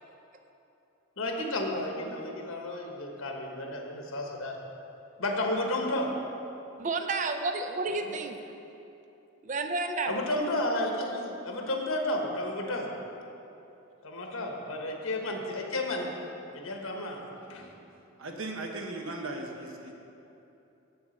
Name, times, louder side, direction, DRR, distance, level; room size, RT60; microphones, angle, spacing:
voice 1, 1.2-4.6 5.2-6.1 10.1-12.9 14.0-16.1 16.5-17.2 17.5-17.7, left 1 dB, 75° left, 1 dB, 1.2 m, -32 dB
voice 2, 6.8-8.5 9.4-10.2, right 3 dB, 35° right, 6 dB, 0.5 m, -31 dB
voice 3, 18.2-19.9, right 2 dB, 70° right, 2 dB, 1.1 m, -37 dB
8.2 x 7.1 x 6.5 m, 2.9 s
head